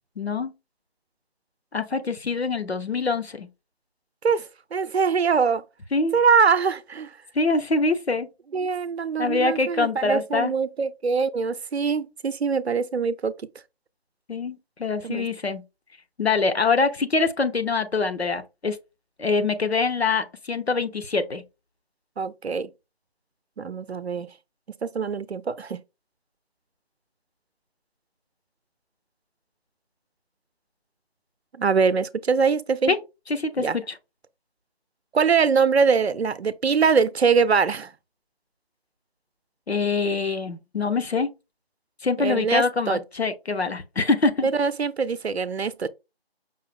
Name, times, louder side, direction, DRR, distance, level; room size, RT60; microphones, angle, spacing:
voice 1, 0.2-0.5 1.7-3.5 5.9-6.1 7.3-8.3 9.2-10.5 14.3-15.6 16.2-18.8 19.2-21.4 32.9-33.0 33.3-34.0 39.7-41.3 42.0-44.5, left 4 dB, 90° left, 0.9 m, -24 dB
voice 2, 4.2-5.6 6.1-7.1 8.5-13.3 15.0-15.3 22.2-22.7 23.6-24.3 24.8-25.8 31.5-32.9 33.6-33.8 35.1-37.9 42.2-43.0 44.4-45.9, right 5 dB, 90° right, 0.6 m, -23 dB
5.4 x 2.1 x 3.4 m
figure-of-eight pair, 170°, 31 cm